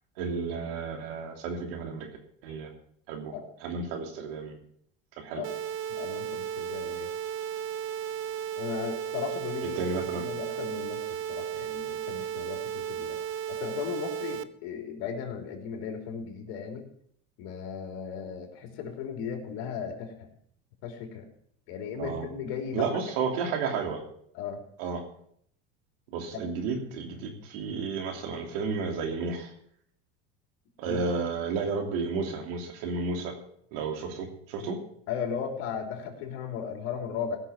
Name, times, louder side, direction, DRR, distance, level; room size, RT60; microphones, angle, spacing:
voice 1, 0.2-2.1 2.4-2.7 3.1-3.3 3.6-4.6 5.2-5.4 9.8-10.3 22.0-22.3 22.7-24.0 24.8-25.0 26.1-29.5 30.8-33.3 33.7-34.8, right 4 dB, 80° right, 3 dB, 3.0 m, -32 dB
sound 1, 5.4-14.4, right 9 dB, 45° right, 0.7 m, -34 dB
voice 2, 5.9-7.1 8.6-13.2 13.5-16.9 17.4-20.3 20.8-21.3 21.7-22.9 24.3-24.7 26.3-26.4 30.8-31.0 35.1-37.4, left 7 dB, 70° left, 3 dB, 3.2 m, -36 dB
16.5 x 6.3 x 7.0 m, 0.67 s
supercardioid pair, 110°, 29 cm